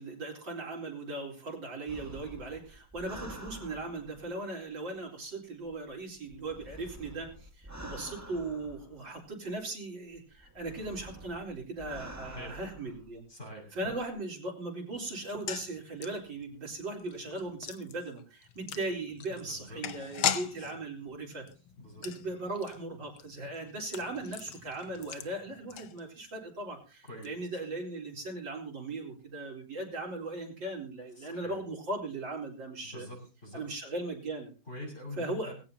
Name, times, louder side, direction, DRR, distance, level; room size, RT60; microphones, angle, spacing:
voice 1, 0.0-13.2 13.7-21.5 22.0-33.1 33.5-34.5 35.2-35.5, right 2 dB, 65° right, 0 dB, 4.8 m, -38 dB
sound 1, 1.9-4.4 5.6-9.3 10.1-13.1 13.8-14.1, right 1 dB, 10° right, 1.6 m, -48 dB
voice 2, 12.2-12.6 13.3-13.9 19.5-19.8 20.6-20.7 21.8-22.1 27.1-27.3 31.2-31.6 32.9-33.6 34.7-35.5, left 1 dB, 35° left, 1 dB, 7.3 m, -44 dB
sound 2, 15.2-26.4 26.7-26.8 27.1-27.3, left 9 dB, 90° left, 1.9 m, -40 dB
20.0 x 17.0 x 2.9 m, 0.34 s
omnidirectional pair, 2.2 m